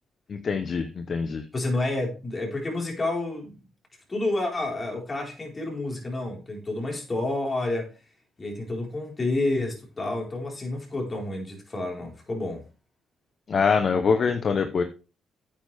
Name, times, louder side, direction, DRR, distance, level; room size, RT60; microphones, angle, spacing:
voice 1, 0.3-1.4 13.5-14.8, left 5 dB, 45° left, 0.9 m, -24 dB
voice 2, 1.5-3.5 4.1-7.9 8.4-12.6, left 2 dB, 30° left, 4.5 m, -29 dB
9.4 x 8.8 x 3.5 m
cardioid pair, 90°, 0 cm